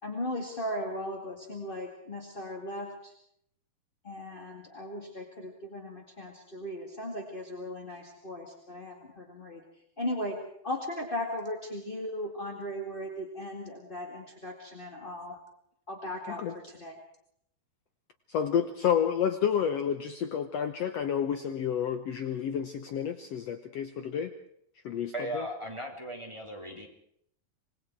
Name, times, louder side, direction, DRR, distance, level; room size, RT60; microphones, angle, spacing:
voice 1, 0.0-3.1 4.0-9.6 10.0-10.4 10.6-15.4 15.9-16.9, left 1 dB, 20° left, 2 dB, 1.4 m, -37 dB
voice 2, 18.3-24.3 24.8-25.4, left 8 dB, 80° left, 9 dB, 1.4 m, -30 dB
voice 3, 25.1-26.9, right 1 dB, 10° right, 2 dB, 2.7 m, -37 dB
26.5 x 21.0 x 4.7 m, 0.70 s
omnidirectional pair, 4.4 m